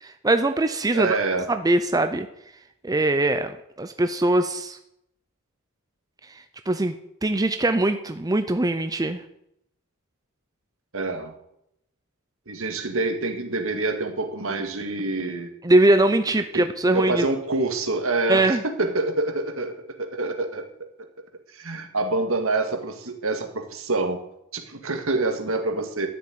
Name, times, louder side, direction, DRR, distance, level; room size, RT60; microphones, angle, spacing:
voice 1, 0.2-1.2 1.5-2.3 2.8-4.8 6.2-9.2 15.6-17.3 18.3-18.6, right 2 dB, 15° right, 8 dB, 0.6 m, -22 dB
voice 2, 0.9-1.5 10.9-11.3 12.5-15.5 16.5-16.7 16.9-20.7 21.5-24.2 24.5-26.1, right 2 dB, 65° right, 5 dB, 2.1 m, -26 dB
13.0 x 7.5 x 9.6 m, 0.79 s
head